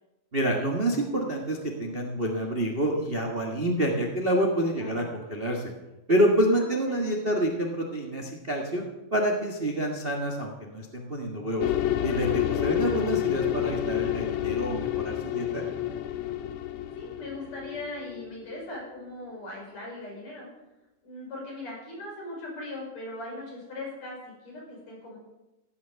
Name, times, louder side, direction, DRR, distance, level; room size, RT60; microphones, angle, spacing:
voice 1, 0.3-5.7 6.1-8.8 9.1-11.7 12.0-15.6, right 1 dB, 90° right, 1 dB, 0.5 m, -27 dB
voice 2, 6.5-7.1 12.7-12.8 16.9-20.5 21.0-25.2, left 2 dB, 50° left, -3 dB, 6.6 m, -39 dB
sound 1, 11.6-18.7, left 12 dB, 80° left, 1.6 m, -29 dB
15.5 x 9.2 x 6.9 m, 1.0 s
omnidirectional pair, 4.1 m